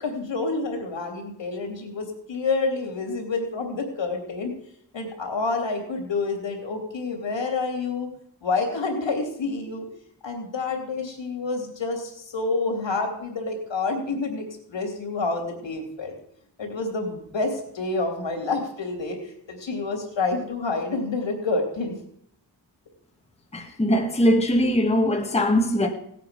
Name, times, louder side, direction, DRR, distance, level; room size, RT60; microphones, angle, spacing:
voice 1, 0.0-4.5 4.9-8.1 8.4-9.8 10.2-16.1 16.6-22.0, left 3 dB, 80° left, 3.1 m, -28 dB
voice 2, 23.5-25.9, left 1 dB, 15° left, 1.1 m, -21 dB
17.5 x 8.4 x 5.2 m
wide cardioid pair, 170°, 44 cm